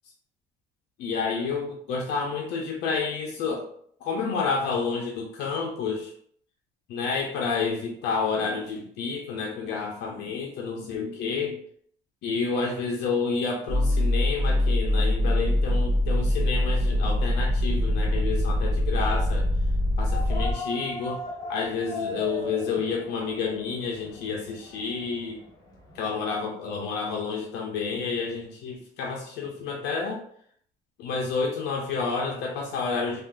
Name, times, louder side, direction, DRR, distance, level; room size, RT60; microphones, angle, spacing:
voice 1, 1.0-3.6 4.0-6.1 6.9-11.6 12.2-19.5 20.0-21.2 21.5-25.4 25.9-30.2 31.0-33.2, left 5 dB, 80° left, 0 dB, 0.6 m, -29 dB
sound 1, 13.7-20.5, left 1 dB, 20° right, 0.7 m, -23 dB
sound 2, 20.1-26.0, left 2 dB, 20° left, 1.1 m, -38 dB
3.5 x 2.4 x 2.4 m, 0.63 s
cardioid pair, 110°, 17 cm